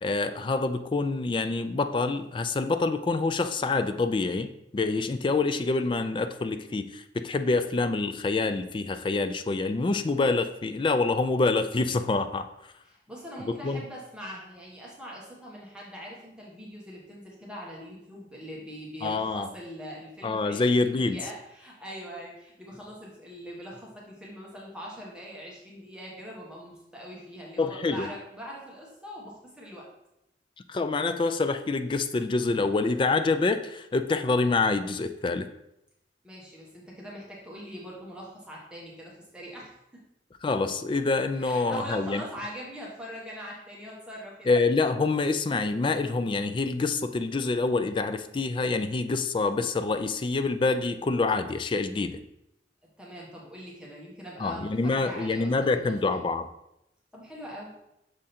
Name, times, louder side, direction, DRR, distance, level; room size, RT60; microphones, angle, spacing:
voice 1, 0.0-4.5 4.7-12.5 13.5-13.8 19.0-19.5 20.2-21.2 27.6-28.1 30.7-35.5 40.4-42.2 44.5-52.2 54.4-56.5, left 3 dB, 30° left, 10 dB, 0.3 m, -26 dB
voice 2, 12.8-29.8 36.2-39.7 41.4-44.7 53.0-56.2 57.1-57.7, equal, 5° right, -4 dB, 1.1 m, -42 dB
6.4 x 3.7 x 4.2 m, 0.85 s
head